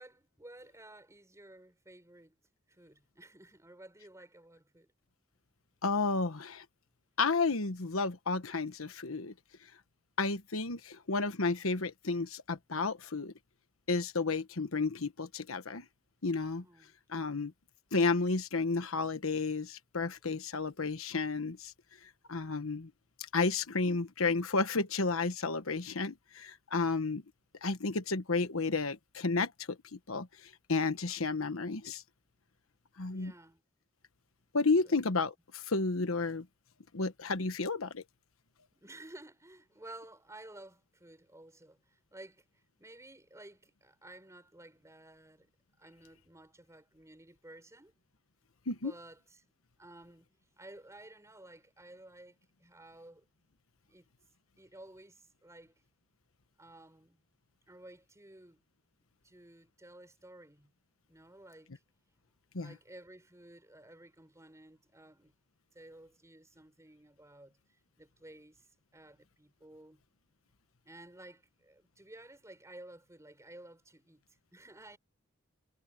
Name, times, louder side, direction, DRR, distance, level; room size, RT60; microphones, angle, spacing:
voice 1, 0.0-2.4 2.7-4.9 16.6-16.9 17.3-17.4 23.6-23.8 33.0-33.6 34.7-34.9 38.7-42.4 42.8-45.5 45.8-47.9 48.8-49.4 49.8-50.3 50.6-53.2 53.9-54.1 54.6-55.7 56.6-57.2 57.7-58.6 59.2-60.7 61.1-61.7 62.6-65.3 65.7-67.6 68.0-68.6 68.9-70.0 70.9-74.2 74.5-75.0, right 1 dB, 15° right, 5.4 m, -54 dB
voice 2, 5.8-6.6 7.2-9.3 10.2-13.3 13.9-15.8 16.2-16.6 17.1-17.5 17.9-21.7 22.3-22.9 23.3-27.2 27.6-30.3 30.7-32.0 33.0-33.3 34.5-36.4 36.9-38.0 48.7-48.9 62.5-62.7, left 3 dB, 85° left, 1.2 m, -32 dB
head